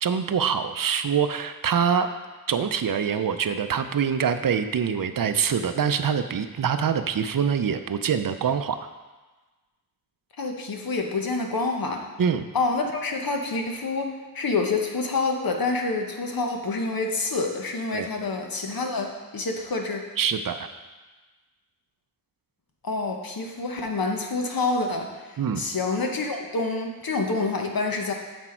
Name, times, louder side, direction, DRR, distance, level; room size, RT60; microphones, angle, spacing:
voice 1, 0.0-2.1 2.5-8.8 12.2-12.4 17.9-18.1 20.2-20.7 25.4-25.6, right 7 dB, 65° right, 10 dB, 0.5 m, -24 dB
voice 2, 10.4-12.0 12.5-20.0 22.8-28.1, left 3 dB, 70° left, 3 dB, 1.0 m, -27 dB
7.0 x 6.2 x 4.4 m, 1.3 s
wide cardioid pair, 70°, 36 cm